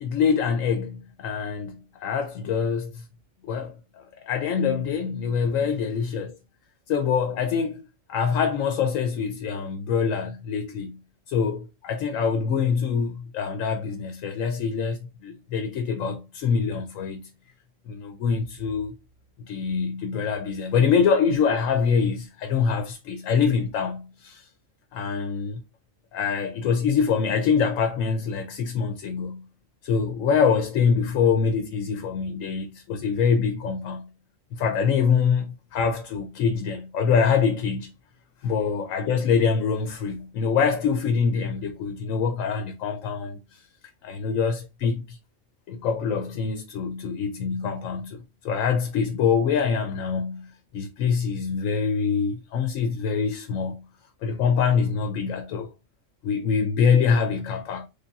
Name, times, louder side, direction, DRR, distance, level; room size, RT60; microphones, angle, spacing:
voice 1, 0.0-3.0 3.5-6.4 6.9-11.0 11.3-17.3 17.9-19.0 19.4-24.5 24.9-25.6 26.1-29.4 29.8-34.1 34.5-37.9 38.4-43.6 44.0-45.2 45.7-53.8 54.2-55.7 56.2-57.9, left 6 dB, 90° left, 1.0 m, -25 dB
4.0 x 3.5 x 2.3 m
omnidirectional pair, 1.3 m